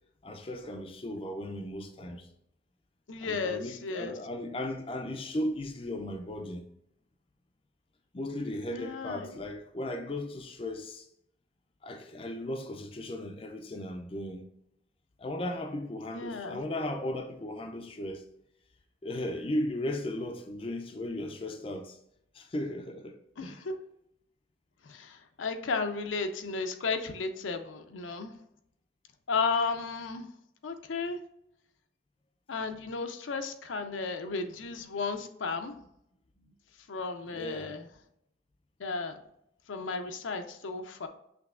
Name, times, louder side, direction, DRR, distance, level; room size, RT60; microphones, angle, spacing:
voice 1, 0.2-2.3 3.2-6.6 8.1-11.1 11.8-14.5 15.2-18.2 19.0-22.0 22.3-23.7 37.3-37.8, left 1 dB, 30° left, 0.4 m, -36 dB
voice 2, 3.1-4.2 8.7-9.4 16.1-16.6 23.4-23.8 24.8-28.3 29.3-30.3 30.6-31.2 32.5-35.7 36.9-37.9 38.8-39.2 39.7-41.1, left 4 dB, 85° left, 0.6 m, -34 dB
5.9 x 3.2 x 2.4 m
head